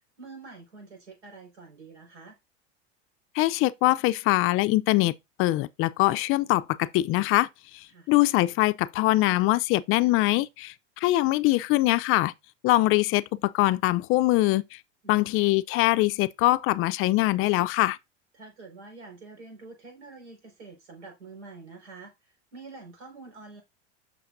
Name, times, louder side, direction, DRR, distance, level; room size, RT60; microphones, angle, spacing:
voice 1, 0.2-2.4 7.9-8.1 15.0-15.3 18.3-23.6, right 3 dB, 90° right, 4.8 m, -46 dB
voice 2, 3.3-5.1 5.4-7.5 7.7-12.3 12.6-14.8 15.1-18.0, left 18 dB, 40° left, 0.4 m, -23 dB
7.1 x 6.0 x 2.5 m
supercardioid pair, 115°, 34 cm